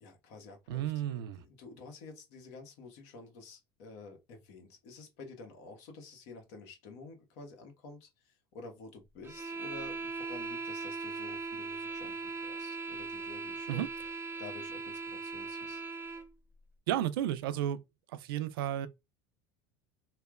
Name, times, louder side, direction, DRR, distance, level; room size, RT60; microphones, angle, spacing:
voice 1, 0.0-13.8 14.4-15.8, left 4 dB, 65° left, 1.1 m, -50 dB
voice 2, 0.7-1.4 13.7-13.9 16.9-17.8 18.1-18.9, right 11 dB, 85° right, 0.4 m, -32 dB
sound 1, 9.2-16.3, right 4 dB, 20° right, 0.6 m, -39 dB
3.1 x 2.0 x 2.3 m
supercardioid pair, 95°, 12 cm